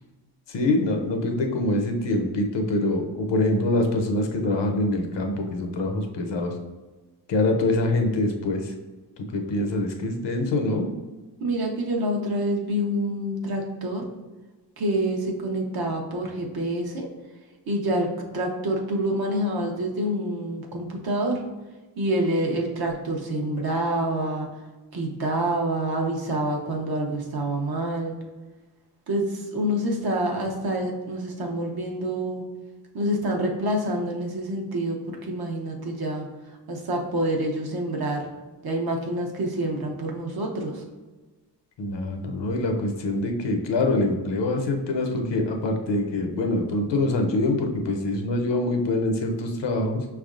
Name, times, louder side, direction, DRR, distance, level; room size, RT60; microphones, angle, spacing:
voice 1, 0.5-6.5 7.3-8.7 9.3-10.9 41.8-50.0, left 2 dB, 80° left, 4 dB, 0.7 m, -24 dB
voice 2, 11.4-14.0 14.8-17.1 17.7-18.1 18.3-21.4 22.0-24.5 24.9-28.1 29.1-32.4 32.9-38.2 38.6-40.8, right 1 dB, 60° right, 1 dB, 0.8 m, -27 dB
5.4 x 3.4 x 2.5 m, 1.2 s
wide cardioid pair, 140°, 42 cm